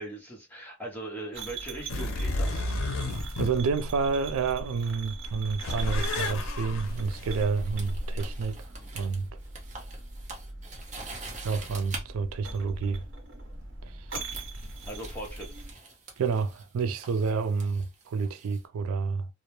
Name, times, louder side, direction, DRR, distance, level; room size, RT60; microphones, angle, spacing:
voice 1, 0.0-2.7 14.9-15.5, right 1 dB, 10° left, 0.7 m, -39 dB
sound 1, 1.3-15.7, right 3 dB, 65° right, 0.9 m, -42 dB
sound 2, 1.9-4.6 5.1-8.4, left 1 dB, 85° left, 0.5 m, -32 dB
voice 2, 3.4-8.6 8.9-9.3 11.4-13.0 13.8-14.1 16.2-19.3, right 5 dB, 85° right, 0.3 m, -29 dB
sound 3, 6.8-12.0 13.3-13.5 14.3-18.6, right 3 dB, 35° right, 0.6 m, -45 dB
2.1 x 2.0 x 2.9 m
head